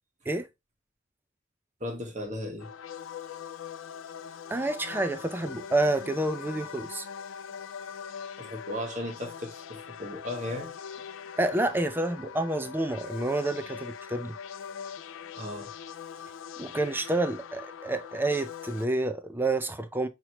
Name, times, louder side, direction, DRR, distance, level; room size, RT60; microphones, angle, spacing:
voice 1, 1.8-2.7 8.4-10.7 15.4-15.7, left 1 dB, 40° right, 1.4 m, -36 dB
sound 1, 2.6-18.9, left 7 dB, 85° left, 0.4 m, -42 dB
voice 2, 4.5-7.1 11.4-14.4 16.6-20.1, right 2 dB, 10° right, 0.4 m, -29 dB
5.9 x 2.9 x 2.9 m
head